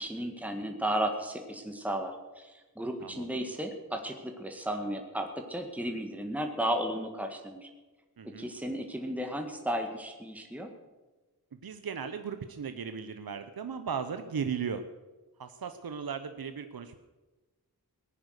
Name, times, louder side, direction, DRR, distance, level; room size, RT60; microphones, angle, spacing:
voice 1, 0.0-7.7 8.4-10.7, right 1 dB, 5° right, 4 dB, 1.8 m, -34 dB
voice 2, 8.2-8.5 11.6-14.8 15.4-17.0, right 6 dB, 70° right, 9 dB, 0.9 m, -36 dB
18.0 x 9.7 x 6.6 m, 1.2 s
wide cardioid pair, 60°, 38 cm